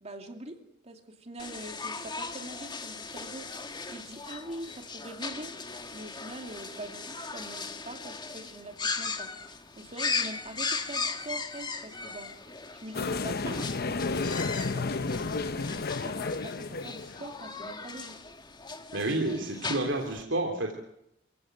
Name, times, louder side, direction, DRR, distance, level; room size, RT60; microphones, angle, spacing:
voice 1, 0.0-3.5 3.9-5.6 5.9-12.4 12.8-14.3 14.7-18.2, right 1 dB, 35° right, 4 dB, 2.6 m, -43 dB
sound 1, 1.4-20.2, left 4 dB, 25° left, 1.7 m, -38 dB
sound 2, 12.9-17.3, left 3 dB, 50° left, 0.8 m, -32 dB
voice 2, 18.9-20.8, right 2 dB, 70° right, 2 dB, 3.2 m, -30 dB
29.0 x 16.5 x 8.0 m, 0.80 s
head